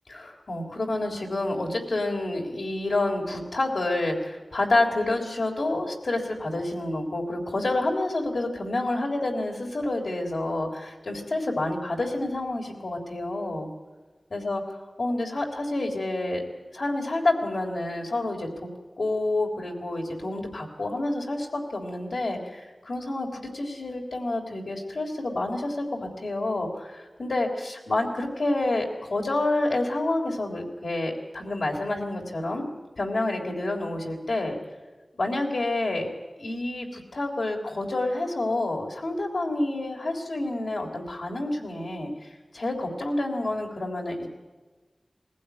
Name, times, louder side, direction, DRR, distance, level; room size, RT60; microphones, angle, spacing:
voice 1, 0.1-13.7 14.3-14.6 15.0-16.4 16.7-18.7 19.0-25.8 26.2-32.6 33.0-34.6 35.1-36.1 36.4-44.3, left 2 dB, 90° left, 0 dB, 3.5 m, -28 dB
21.0 x 15.5 x 9.4 m, 1.3 s
wide cardioid pair, 50°, 0 cm